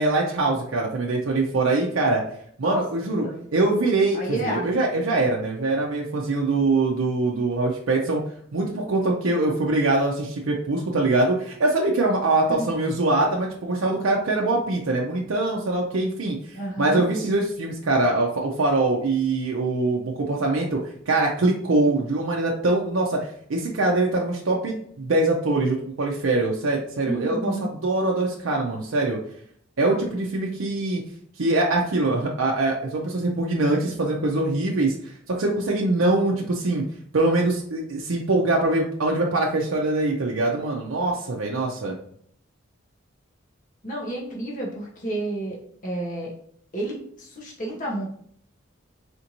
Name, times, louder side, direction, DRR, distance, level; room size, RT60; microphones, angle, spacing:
voice 1, 0.0-2.2 2.6-3.2 3.5-8.2 8.5-16.4 16.8-29.2 29.8-31.0 31.4-36.8 37.1-42.0, right 2 dB, 75° right, -1 dB, 0.6 m, -23 dB
voice 2, 4.1-5.0 12.5-12.7 16.5-17.0 27.0-27.7 43.8-45.6 45.8-46.3 46.7-48.1, right 1 dB, 40° left, -3 dB, 0.9 m, -30 dB
4.3 x 2.6 x 2.9 m, 0.63 s
head